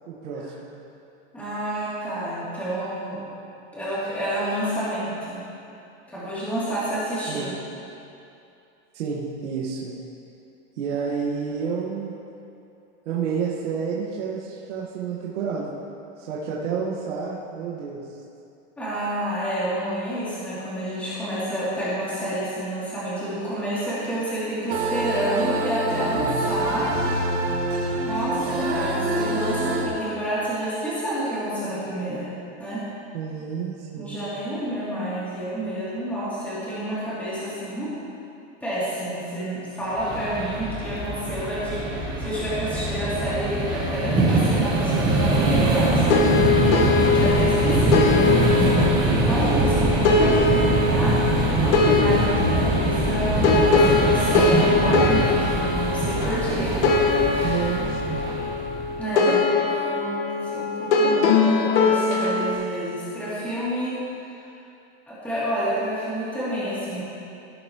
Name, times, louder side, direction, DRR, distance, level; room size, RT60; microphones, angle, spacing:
voice 1, 0.1-0.7 7.3-7.5 8.9-9.9 10.7-12.1 13.0-15.7 16.2-18.2 33.1-34.2 57.4-58.2, right 6 dB, 85° right, -6 dB, 1.7 m, -30 dB
voice 2, 1.3-3.2 3.7-5.4 6.1-7.5 18.8-26.9 28.0-32.3 32.6-32.8 34.0-38.0 38.6-46.1 47.1-48.1 48.4-51.6 51.9-56.8 57.3-57.7 59.0-64.5 65.1-67.0, right 1 dB, 5° left, -12 dB, 2.9 m, -29 dB
sound 1, 24.7-29.9, right 1 dB, 60° right, 1.8 m, -26 dB
sound 2, 39.9-59.0, right 2 dB, 10° right, 1.1 m, -23 dB
sound 3, 46.1-62.5, left 4 dB, 70° left, 1.5 m, -22 dB
18.0 x 8.2 x 3.1 m, 2.7 s
supercardioid pair, 180°, 35 cm